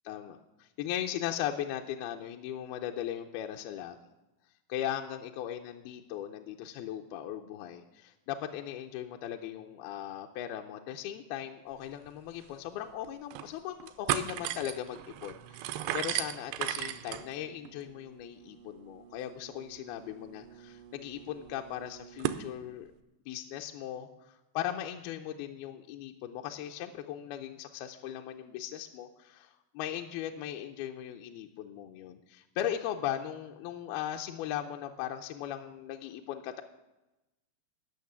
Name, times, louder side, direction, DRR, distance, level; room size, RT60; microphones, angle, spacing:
voice 1, 0.1-4.0 4.7-22.9 23.3-36.6, left 11 dB, 80° left, 3 dB, 2.3 m, -38 dB
sound 1, 12.1-12.2 12.4-12.5 13.0-13.5 13.8-22.4, right 12 dB, 80° right, 2.6 m, -38 dB
15.0 x 6.5 x 9.4 m, 1.0 s
omnidirectional pair, 4.8 m